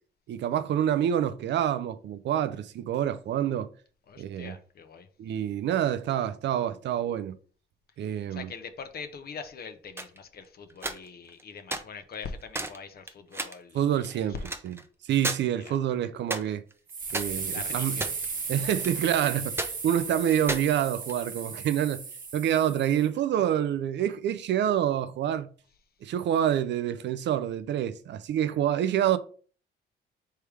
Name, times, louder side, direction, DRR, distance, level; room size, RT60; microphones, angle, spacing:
voice 1, 0.3-3.7 4.2-4.6 5.2-7.4 8.0-8.5 13.7-14.3 14.6-14.8 15.0-16.6 17.1-18.0 18.5-22.0 22.3-25.5 26.0-29.2, right 10 dB, 65° right, 0.5 m, -27 dB
voice 2, 4.1-5.1 8.1-14.5 15.6-15.7 17.5-18.1, left 5 dB, 50° left, 0.8 m, -42 dB
sound 1, 10.0-10.2 10.7-11.4 11.7-11.8 12.2-12.3 12.5-12.8 13.1-13.6 14.0-14.8 15.2-15.4 15.7-15.8 16.3-16.7 17.1-18.4 18.6-19.3 19.6-19.7 20.3-21.4, right 2 dB, 10° right, 0.6 m, -33 dB
sound 2, 16.9-23.1, right 5 dB, 45° right, 1.0 m, -36 dB
3.4 x 3.3 x 4.6 m
cardioid pair, 90°, 20 cm